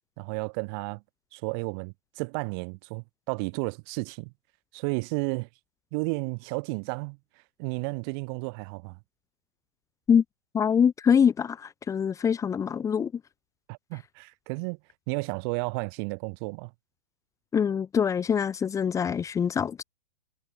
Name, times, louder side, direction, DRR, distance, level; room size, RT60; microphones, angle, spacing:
voice 1, 0.2-1.0 1.3-4.3 4.7-5.5 5.9-7.2 7.6-9.0 13.7-14.8 15.1-16.7, right 34 dB, 40° right, 6.2 m, -32 dB
voice 2, 10.5-13.1 17.5-19.8, left 7 dB, 15° left, 3.6 m, -24 dB
hypercardioid pair, 115°, 18 cm